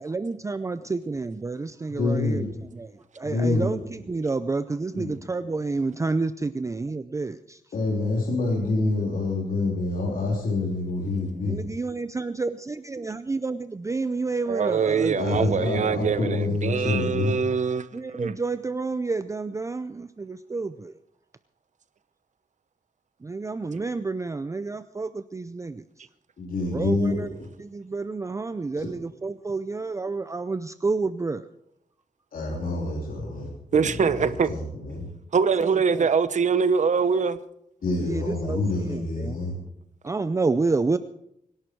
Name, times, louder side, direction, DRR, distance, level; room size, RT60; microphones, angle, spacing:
voice 1, 0.0-2.5 2.7-7.6 11.4-15.9 17.9-20.9 23.2-26.0 26.7-27.3 27.6-31.5 35.6-36.1 38.0-38.6 38.9-39.4 40.0-41.0, right 3 dB, 20° right, 0.5 m, -29 dB
voice 2, 1.9-2.5 3.2-3.9 4.9-5.1 7.7-11.6 15.1-17.3 26.4-27.5 28.8-28.9 32.3-35.1 37.8-39.6, left 3 dB, 70° left, 3.4 m, -27 dB
voice 3, 14.5-17.9 18.1-18.3 23.7-23.8 33.7-34.5 35.3-37.4, right 6 dB, 55° right, 0.9 m, -23 dB
24.5 x 11.0 x 4.6 m
wide cardioid pair, 155°, 15 cm